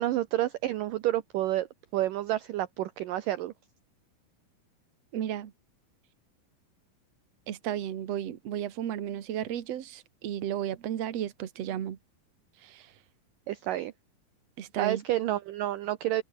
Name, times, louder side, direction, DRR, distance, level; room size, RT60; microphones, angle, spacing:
voice 1, 0.0-1.7 1.9-3.5 13.5-13.9 14.8-16.2, right 14 dB, 70° right, 2.3 m, -29 dB
voice 2, 5.1-5.5 7.5-12.0 12.6-12.9 14.6-15.0, right 10 dB, 50° right, 2.4 m, -34 dB
open air
omnidirectional pair, 4.5 m